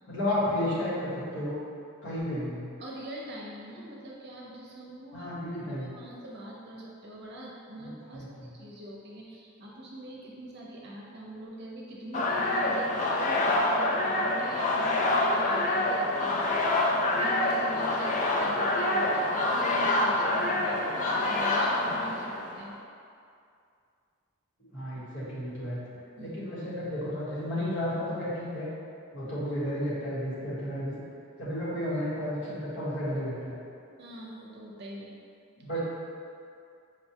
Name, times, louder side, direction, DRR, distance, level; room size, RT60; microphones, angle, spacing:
voice 1, 0.1-1.6 2.0-2.6 5.1-5.9 7.8-8.5 24.7-25.8 26.2-28.7 29.1-30.9 31.4-33.6 35.6-35.8, left 1 dB, 60° left, -10 dB, 1.2 m, -32 dB
voice 2, 2.8-5.3 5.7-16.8 17.2-18.1 18.4-22.7 26.2-26.3 34.0-35.2 35.7-35.8, right 1 dB, 55° right, -4 dB, 0.6 m, -43 dB
sound 1, 12.1-22.6, left 2 dB, 35° left, 0.3 m, -26 dB
5.0 x 2.2 x 2.8 m, 2.4 s
head